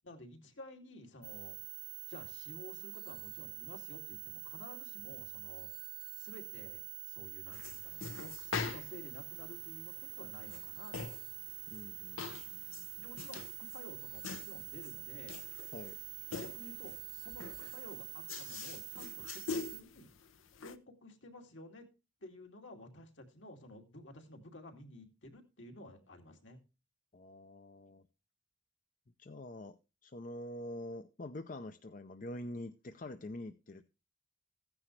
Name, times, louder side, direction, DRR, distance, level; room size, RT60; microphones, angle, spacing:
voice 1, 0.0-1.6 2.1-5.9 6.2-11.3 13.0-15.4 16.3-20.1 20.6-21.9 22.2-26.6, left 1 dB, 70° left, 3 dB, 2.5 m, -53 dB
sound 1, 1.2-19.8, right 21 dB, 50° right, 0.7 m, -46 dB
sound 2, 7.5-20.8, left 5 dB, 85° left, 0.8 m, -45 dB
voice 2, 11.7-12.9 15.7-16.0 27.1-28.1 29.2-33.9, left 1 dB, 40° left, 9 dB, 0.5 m, -46 dB
15.0 x 9.8 x 3.2 m, 0.30 s
head